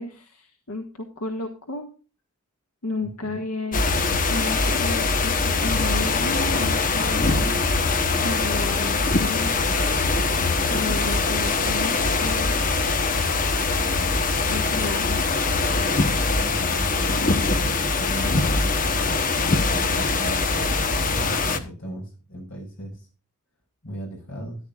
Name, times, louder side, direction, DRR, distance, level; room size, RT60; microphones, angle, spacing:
voice 1, 0.0-1.9 2.8-4.0 4.3-7.5 8.2-9.5 10.6-12.5 14.5-15.2, left 2 dB, 85° left, 3 dB, 1.7 m, -32 dB
voice 2, 3.0-3.4 14.6-14.9 16.3-18.5 19.6-23.1 23.8-24.6, right 1 dB, 60° left, 1 dB, 6.6 m, -37 dB
sound 1, 3.7-21.6, left 3 dB, 40° left, 1.0 m, -22 dB
15.0 x 10.5 x 2.4 m, 0.35 s
head